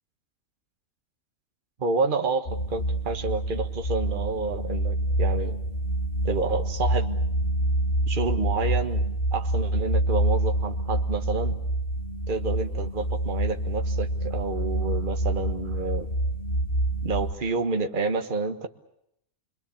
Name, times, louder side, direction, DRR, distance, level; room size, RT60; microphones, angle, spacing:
voice 1, 1.8-5.6 6.2-7.2 8.1-9.0 9.3-11.5 12.3-16.1 17.0-18.7, right 3 dB, 35° right, 6 dB, 1.5 m, -29 dB
sound 1, 2.5-17.3, right 1 dB, 40° left, 2.4 m, -27 dB
28.0 x 23.0 x 7.1 m, 0.76 s
omnidirectional pair, 1.5 m